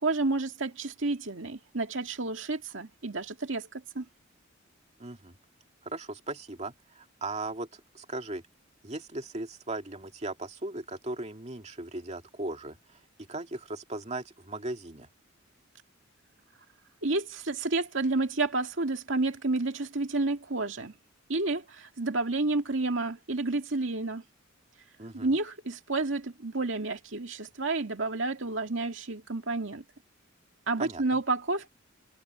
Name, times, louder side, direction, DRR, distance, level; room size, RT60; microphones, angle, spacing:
voice 1, 0.0-4.0 17.0-20.9 21.3-24.2 25.1-29.8 30.7-31.7, right 3 dB, 70° right, 2.3 m, -30 dB
voice 2, 5.0-5.3 5.8-8.4 8.8-13.0 13.3-15.1 25.0-25.3 30.8-31.2, right 2 dB, 35° right, 2.3 m, -38 dB
head